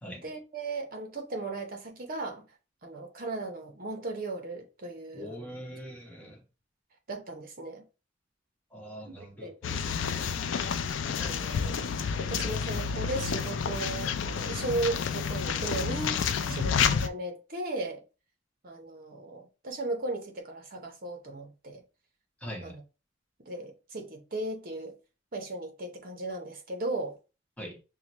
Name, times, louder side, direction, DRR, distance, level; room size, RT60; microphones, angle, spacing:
voice 1, 0.0-2.4 2.8-5.5 7.1-7.9 9.0-9.6 11.2-11.8 12.2-16.8 17.0-18.0 18.6-21.8 22.6-22.8 23.4-25.0 25.3-27.2, right 2 dB, 50° right, 0.8 m, -36 dB
voice 2, 5.1-6.4 8.7-10.4 16.5-16.7 22.4-22.8 27.6-27.8, equal, 10° left, 1.1 m, -42 dB
sound 1, 9.6-17.1, left 6 dB, 75° left, 0.4 m, -30 dB
5.6 x 2.2 x 3.0 m
head